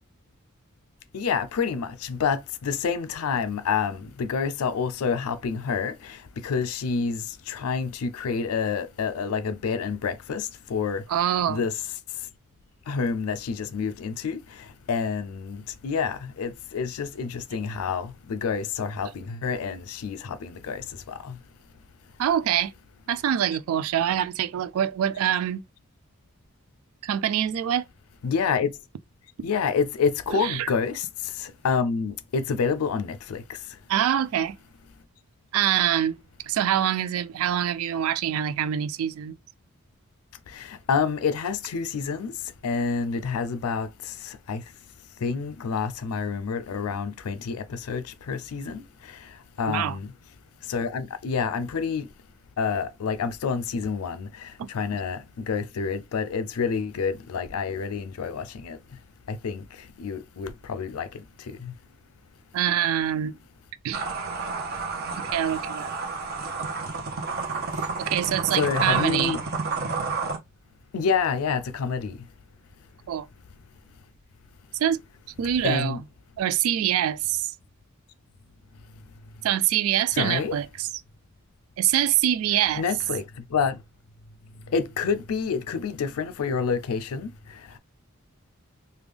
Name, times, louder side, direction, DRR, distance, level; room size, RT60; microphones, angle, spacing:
voice 1, 1.1-11.0 11.5-11.8 12.9-21.4 28.2-28.7 29.4-33.6 40.5-42.4 42.6-44.6 45.2-50.1 50.7-52.1 52.6-58.8 59.3-61.7 68.5-69.4 70.9-72.2 75.6-76.0 80.1-80.6 82.8-83.8 84.7-87.8, left 5 dB, 85° left, 0.4 m, -28 dB
voice 2, 11.1-11.6 22.2-22.7 23.1-25.6 27.0-27.8 30.3-30.7 33.9-34.6 35.5-36.2 36.4-39.4 49.7-50.0 54.6-54.7 62.5-63.3 63.8-64.1 65.2-65.9 68.0-69.4 73.1-73.3 74.8-75.0 75.4-76.0 76.4-77.5 79.4-80.9 81.8-82.8, right 10 dB, 80° right, 0.3 m, -25 dB
sound 1, 63.9-70.4, right 4 dB, 45° right, 0.9 m, -30 dB
3.3 x 2.3 x 3.4 m
head